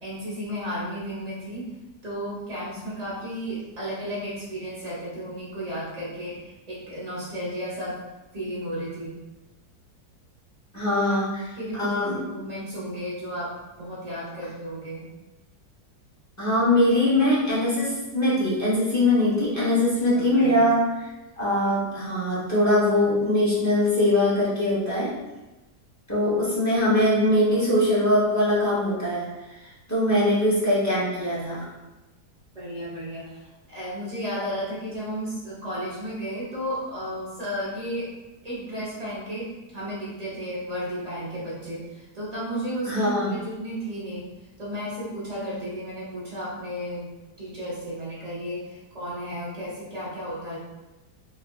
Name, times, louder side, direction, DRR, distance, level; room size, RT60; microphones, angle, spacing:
voice 1, 0.0-1.7 2.0-8.0 8.3-9.2 11.0-11.2 11.6-12.0 12.3-13.5 13.8-15.0 20.0-20.7 32.5-38.1 38.4-44.3 44.6-47.1 47.4-50.6, equal, 45° right, -7 dB, 0.5 m, -33 dB
voice 2, 10.7-11.4 11.7-12.2 16.4-20.8 21.4-25.1 26.1-29.3 29.9-31.6 42.9-43.3, left 1 dB, 20° left, -9 dB, 0.4 m, -22 dB
3.6 x 2.4 x 2.2 m, 1.1 s
omnidirectional pair, 1.8 m